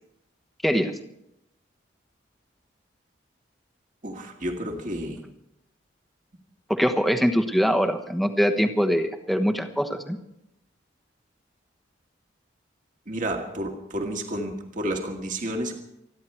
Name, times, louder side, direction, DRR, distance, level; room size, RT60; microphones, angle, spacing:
voice 1, 4.0-5.2 13.1-15.7, right 1 dB, 40° right, 2 dB, 2.1 m, -31 dB
voice 2, 6.7-10.2, equal, ahead, 6 dB, 1.2 m, -23 dB
28.5 x 10.5 x 4.6 m, 0.80 s
head